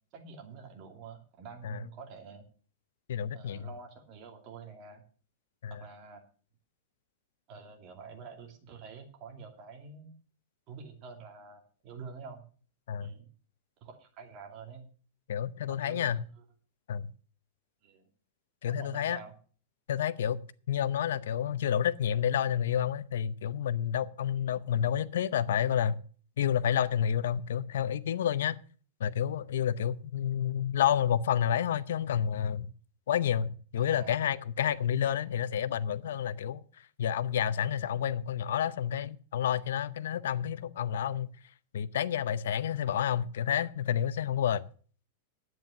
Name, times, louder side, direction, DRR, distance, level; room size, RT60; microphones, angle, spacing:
voice 1, 0.1-2.5 3.3-5.0 5.7-6.2 7.5-10.1 10.7-12.4 13.0-13.3 13.8-14.9 15.7-16.2 17.8-18.1 18.6-19.3 24.4-24.6 33.8-34.2, right 5 dB, 30° right, 2.6 m, -47 dB
voice 2, 3.1-3.7 5.6-5.8 12.9-13.1 15.3-16.2 16.9-17.1 18.6-19.2 19.9-26.0 26.4-28.6 29.0-32.7 33.1-36.6 37.0-41.3 41.7-44.7, left 9 dB, 80° left, 0.7 m, -29 dB
11.0 x 9.1 x 6.6 m
supercardioid pair, 170°, 0 cm